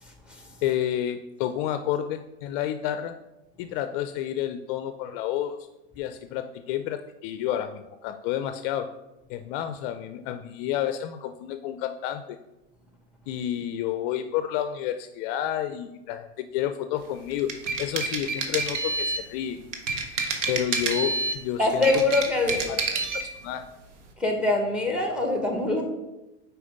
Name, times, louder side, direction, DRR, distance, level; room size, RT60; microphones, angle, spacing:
voice 1, 0.0-0.5 21.6-22.8 24.2-25.8, left 2 dB, 5° right, 3 dB, 1.3 m, -24 dB
voice 2, 0.6-3.1 3.6-5.6 6.0-8.9 9.3-12.4 13.3-17.5 17.8-19.6 20.5-21.9 22.7-22.8 23.1-23.6, left 11 dB, 50° left, 9 dB, 0.4 m, -30 dB
sound 1, 17.3-19.3 19.7-21.4 21.7-23.3, right 3 dB, 90° right, 1.1 m, -28 dB
5.0 x 4.5 x 5.0 m, 0.98 s
supercardioid pair, 115°, 36 cm